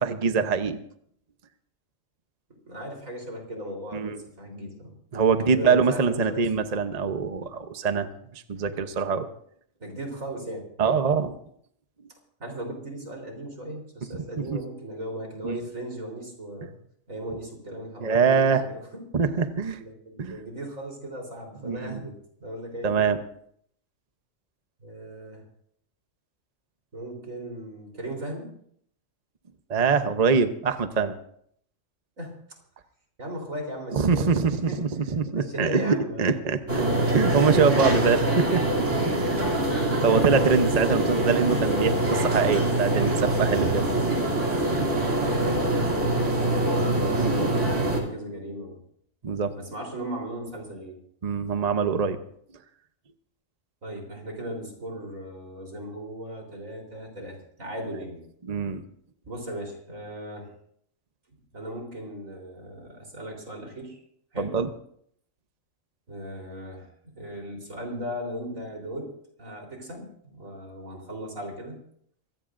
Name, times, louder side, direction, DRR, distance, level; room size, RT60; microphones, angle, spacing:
voice 1, 0.0-0.8 3.9-4.1 5.1-8.1 8.3-9.3 10.8-11.3 14.5-14.6 15.4-15.6 18.0-18.6 19.1-19.8 20.2-20.3 21.6-22.0 22.8-23.2 29.7-31.1 33.9-38.6 39.1-39.3 40.0-43.9 47.2-47.5 49.2-49.5 51.2-52.2 58.5-58.8 64.4-64.7, right 5 dB, 35° right, 8 dB, 0.8 m, -24 dB
voice 2, 2.5-4.9 5.4-6.5 8.5-8.9 9.8-11.0 12.4-16.8 17.1-19.1 19.8-23.1 24.8-25.4 26.9-28.5 32.2-32.4 33.2-36.4 45.0-48.8 49.5-51.0 53.8-58.2 59.3-60.5 61.5-64.0 64.3-64.6 66.1-69.1 69.4-71.8, right 1 dB, 80° right, 1 dB, 4.2 m, -38 dB
sound 1, 36.7-48.0, right 1 dB, 65° right, 3.2 m, -24 dB
24.5 x 16.0 x 2.6 m, 0.67 s
omnidirectional pair, 1.4 m